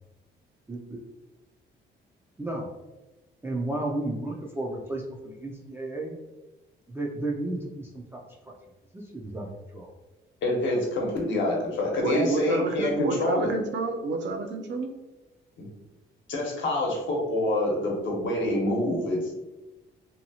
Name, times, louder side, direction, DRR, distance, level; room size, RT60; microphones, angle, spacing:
voice 1, 2.4-2.7 3.4-6.2 6.9-8.2 8.9-9.9, right 2 dB, 10° right, -2 dB, 0.4 m, -33 dB
voice 2, 10.4-13.5 15.6-15.7 16.3-19.3, left 1 dB, 75° left, -2 dB, 0.9 m, -26 dB
voice 3, 12.0-14.9, right 3 dB, 65° right, 4 dB, 0.5 m, -29 dB
2.8 x 2.2 x 2.8 m, 1.1 s
cardioid pair, 90°, 20 cm